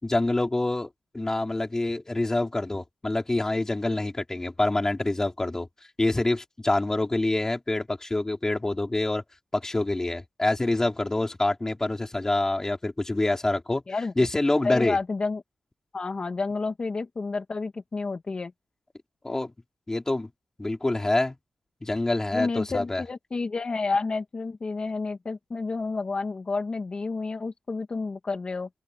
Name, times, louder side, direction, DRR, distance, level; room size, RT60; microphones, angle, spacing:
voice 1, 0.0-5.7 6.0-9.2 9.5-13.8 14.2-15.0 19.2-19.5 19.9-20.3 20.6-21.3 21.8-23.0, left 2 dB, 20° left, 4.6 m, -26 dB
voice 2, 14.6-15.4 15.9-18.5 22.3-28.7, left 3 dB, 45° left, 2.3 m, -30 dB
cardioid pair, 75°, 2 cm